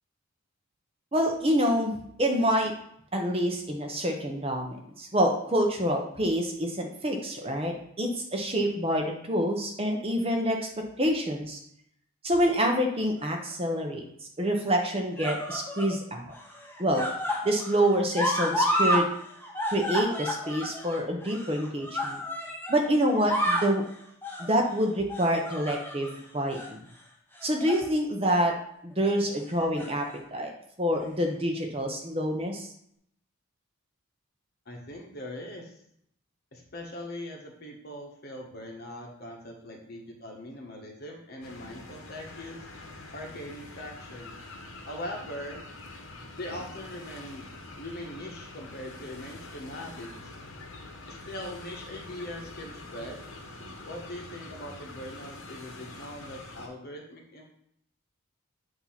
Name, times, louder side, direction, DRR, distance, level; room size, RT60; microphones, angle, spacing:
voice 1, 1.1-1.9 2.2-2.7 3.1-10.7 11.0-11.6 12.2-14.0 14.4-16.3 16.8-17.0 17.4-19.1 19.7-22.2 22.7-23.8 24.4-26.8 27.4-28.5 28.8-30.0 30.3-30.5 30.8-32.7, equal, 25° right, 2 dB, 0.8 m, -27 dB
sound 1, 13.2-13.8 14.7-16.0 16.3-19.1 19.3-22.8 23.1-23.8 24.2-24.5 25.1-26.1 26.5-26.7 27.4-27.9 28.2-28.4 29.5-30.2 31.0-31.1, equal, 10° left, 0.8 m, -31 dB
voice 2, 34.6-35.7 36.5-42.6 43.1-44.3 44.8-45.6 46.4-47.5 47.8-50.3 51.1-53.2 53.9-57.5, left 1 dB, 45° left, 0 dB, 1.3 m, -41 dB
sound 2, 41.4-56.7, left 2 dB, 60° left, 1.1 m, -45 dB
8.4 x 2.8 x 5.7 m, 0.71 s
head